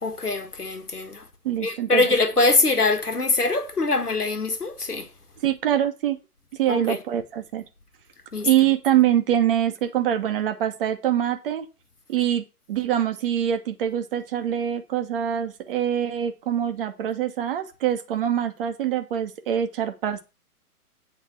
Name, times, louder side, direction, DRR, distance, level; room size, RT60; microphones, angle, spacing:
voice 1, 0.0-1.2 1.6-5.1 6.7-7.0 8.3-8.5, left 3 dB, 85° left, 1.6 m, -23 dB
voice 2, 1.4-2.0 5.4-6.2 6.6-7.6 8.4-11.7 12.1-20.2, right 10 dB, 35° right, 1.2 m, -24 dB
8.5 x 3.9 x 7.0 m
figure-of-eight pair, 120°, 45 cm